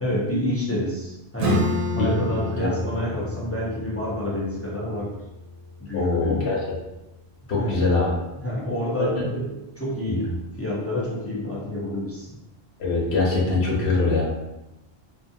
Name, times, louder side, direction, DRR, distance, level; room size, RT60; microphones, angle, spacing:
voice 1, 0.0-5.1 5.8-6.5 7.5-7.7 8.4-12.4, left 1 dB, 20° left, -8 dB, 0.3 m, -28 dB
Acoustic guitar / Strum, 1.4-6.6, left 1 dB, 75° right, 0.8 m, -30 dB
voice 2, 5.9-6.6 7.5-8.1 9.0-9.2 10.1-10.2 12.8-14.2, left 3 dB, 65° left, -3 dB, 1.0 m, -23 dB
2.6 x 2.3 x 2.6 m, 0.96 s
omnidirectional pair, 1.2 m